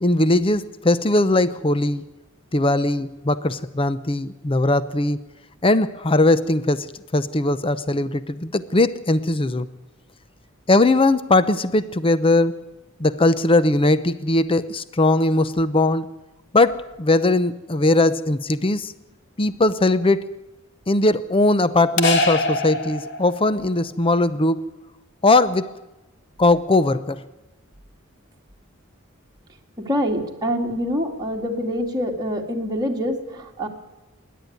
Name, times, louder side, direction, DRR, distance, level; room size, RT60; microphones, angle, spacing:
voice 1, 0.0-2.1 2.5-5.2 5.6-9.7 10.7-12.6 13.0-16.1 16.5-18.9 19.4-20.2 20.9-24.6 25.2-25.7 26.4-27.2, left 2 dB, 25° left, 14 dB, 0.7 m, -19 dB
sound 1, 22.0-23.6, left 2 dB, 55° left, 2.0 m, -23 dB
voice 2, 29.9-33.7, equal, 20° right, -1 dB, 2.5 m, -25 dB
27.0 x 11.0 x 9.5 m, 1.0 s
head